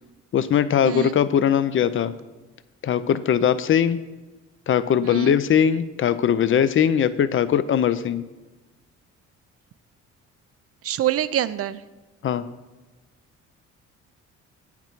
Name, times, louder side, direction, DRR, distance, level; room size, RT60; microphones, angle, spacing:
voice 1, 0.3-2.1 2.8-4.0 4.7-8.2 12.2-12.4, left 8 dB, 45° left, 14 dB, 0.5 m, -20 dB
voice 2, 0.8-1.2 5.0-5.4 10.8-11.8, right 12 dB, 50° right, 16 dB, 0.4 m, -25 dB
8.4 x 5.9 x 4.5 m, 1.2 s
cardioid pair, 90°, 30 cm